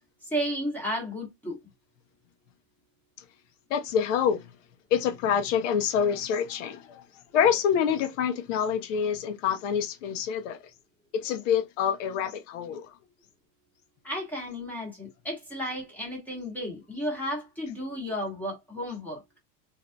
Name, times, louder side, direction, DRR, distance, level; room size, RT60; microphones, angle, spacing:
voice 1, 0.3-1.6 14.0-19.2, equal, 5° left, 1.2 m, -33 dB
voice 2, 3.7-4.5 4.9-7.0 7.3-10.6 11.1-12.9, left 8 dB, 65° left, 1.0 m, -26 dB
3.8 x 2.8 x 2.2 m
supercardioid pair, 175°, 39 cm